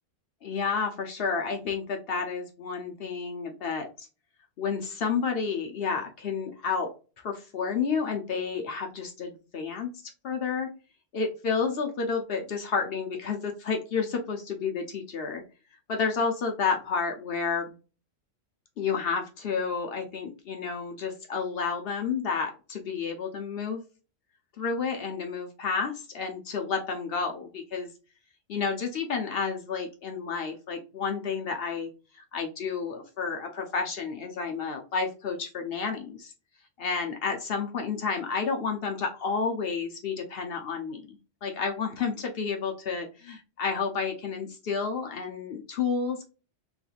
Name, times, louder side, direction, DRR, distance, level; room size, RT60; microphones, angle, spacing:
voice 1, 0.4-4.1 4.6-6.9 7.2-9.9 10.2-10.7 11.1-15.4 15.9-17.7 18.8-23.8 24.6-27.9 28.5-36.3 36.8-46.2, left 5 dB, 60° left, 3 dB, 0.8 m, -30 dB
3.1 x 3.0 x 2.4 m, 0.33 s
omnidirectional pair, 1.2 m